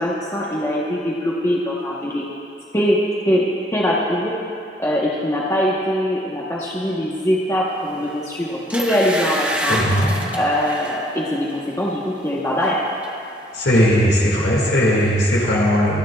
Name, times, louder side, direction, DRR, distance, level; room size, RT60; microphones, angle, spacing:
voice 1, 0.0-2.3 2.7-3.0 3.3-3.4 3.7-4.3 4.8-9.8 10.3-12.8, equal, 15° left, -5 dB, 1.0 m, -22 dB
sound 1, 8.0-8.2 8.7-11.0 11.5-11.7 12.0-12.8 13.0-13.1, right 1 dB, 10° right, 0.9 m, -27 dB
voice 2, 9.7-10.1 13.5-16.0, equal, 70° left, -4 dB, 1.9 m, -17 dB
28.5 x 10.0 x 2.3 m, 2.5 s
head